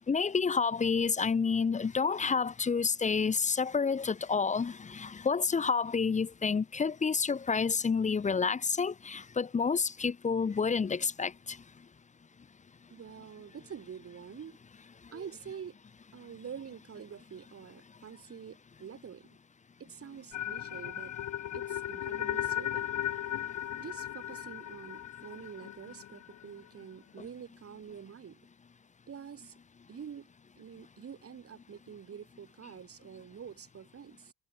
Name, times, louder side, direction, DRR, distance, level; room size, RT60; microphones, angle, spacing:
voice 1, 0.1-11.6, left 5 dB, 25° left, 0.7 m, -29 dB
voice 2, 12.9-14.6 15.1-15.8 16.1-19.4 19.8-21.2 21.5-22.9 23.8-28.4 29.1-29.5 29.9-30.3 30.6-34.3, right 7 dB, 50° right, 4.0 m, -46 dB
sound 1, 20.3-26.4, left 11 dB, 70° left, 2.8 m, -36 dB
cardioid pair, 90°, 30 cm